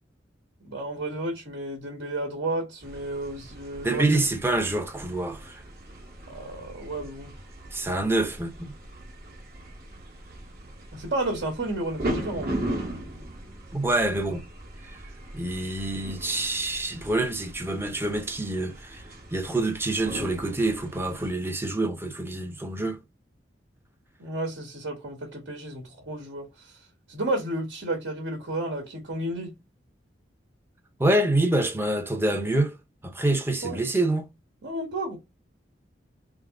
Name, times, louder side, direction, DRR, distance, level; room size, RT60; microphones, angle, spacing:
voice 1, 0.6-4.1 6.3-7.3 10.9-12.6 24.2-29.5 33.6-33.9 34.6-35.2, right 1 dB, 80° right, 1.3 m, -32 dB
sound 1, 2.8-21.3, right 1 dB, 55° right, 1.0 m, -39 dB
voice 2, 3.8-5.6 7.7-8.7 13.7-14.4 14.8-15.0 15.3-19.1 19.3-23.0 31.0-32.8 33.0-34.3, right 2 dB, 15° right, 0.6 m, -26 dB
3.5 x 2.0 x 3.5 m
head